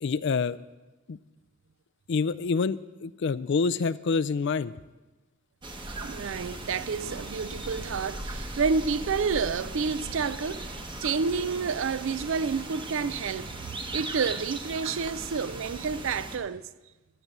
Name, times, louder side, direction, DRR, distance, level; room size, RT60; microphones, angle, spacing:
voice 1, 0.0-0.6 1.1-1.2 2.1-4.7, left 5 dB, 55° left, 0.4 m, -27 dB
sound 1, 5.6-16.4, right 2 dB, 20° right, 1.0 m, -38 dB
voice 2, 5.9-13.5 13.9-16.6, right 5 dB, 60° right, 0.4 m, -29 dB
15.0 x 6.8 x 7.3 m
head